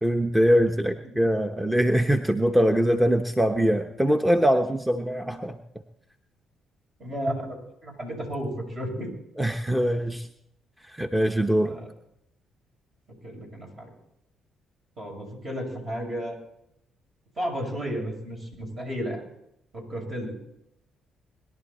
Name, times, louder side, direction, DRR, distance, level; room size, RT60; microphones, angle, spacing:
voice 1, 0.0-5.6 9.4-10.3 10.9-11.8, equal, 10° right, 6 dB, 1.0 m, -23 dB
voice 2, 7.0-9.1 11.6-11.9 13.2-13.9 15.0-16.3 17.4-19.2 19.7-20.3, equal, 50° right, 0 dB, 7.1 m, -33 dB
21.5 x 11.5 x 4.3 m, 0.79 s
hypercardioid pair, 45°, 0 cm